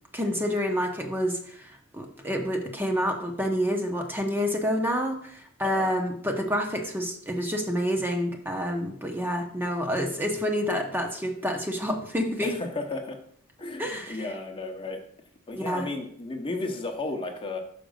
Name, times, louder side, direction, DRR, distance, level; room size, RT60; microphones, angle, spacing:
voice 1, 0.1-12.6 13.8-14.2 15.5-15.9, equal, 10° right, 2 dB, 0.8 m, -28 dB
voice 2, 12.4-13.2 13.6-15.0 15.5-17.6, left 2 dB, 25° left, 4 dB, 0.9 m, -34 dB
5.8 x 5.1 x 6.4 m, 0.63 s
head